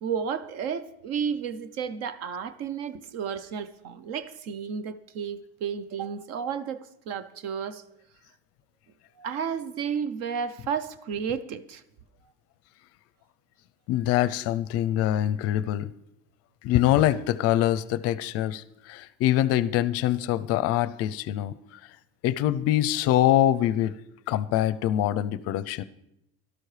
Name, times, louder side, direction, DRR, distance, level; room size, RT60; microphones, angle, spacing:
voice 1, 0.0-7.8 9.2-11.8 14.1-14.2, right 7 dB, 55° right, 0.7 m, -32 dB
voice 2, 13.9-15.9 16.6-21.8 22.2-24.0 24.3-25.8, left 12 dB, 50° left, 0.5 m, -24 dB
17.5 x 12.5 x 3.3 m
supercardioid pair, 130°, 31 cm